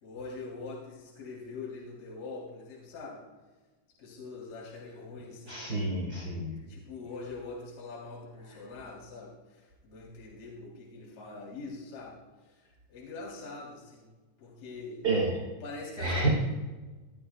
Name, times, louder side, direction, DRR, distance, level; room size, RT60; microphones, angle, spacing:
voice 1, 0.0-3.3 4.0-5.7 6.7-14.1 14.4-15.0 15.6-16.3, left 3 dB, 50° left, -5 dB, 4.5 m, -43 dB
voice 2, 5.4-6.5 8.5-8.6 15.0-15.4 16.0-16.3, right 2 dB, 85° right, -3 dB, 0.8 m, -29 dB
22.0 x 13.0 x 2.3 m, 1.2 s
omnidirectional pair, 5.3 m